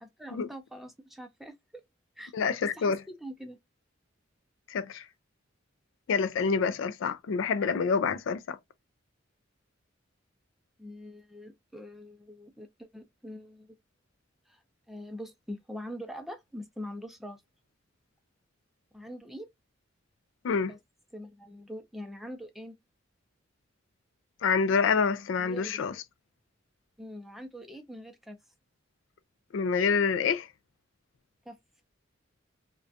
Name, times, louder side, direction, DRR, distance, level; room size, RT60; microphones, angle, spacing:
voice 1, 0.0-1.8 2.2-2.3 2.8-3.6 10.8-13.8 14.5-14.6 14.9-17.4 18.9-19.5 20.7-20.8 21.1-22.8 25.4-25.8 27.0-28.4 31.5-31.6, equal, ahead, 0.4 m, -43 dB
voice 2, 2.3-3.0 4.7-5.1 6.1-8.6 20.4-20.7 24.4-26.0 29.5-30.5, left 5 dB, 70° left, 0.3 m, -27 dB
2.4 x 2.2 x 2.5 m
head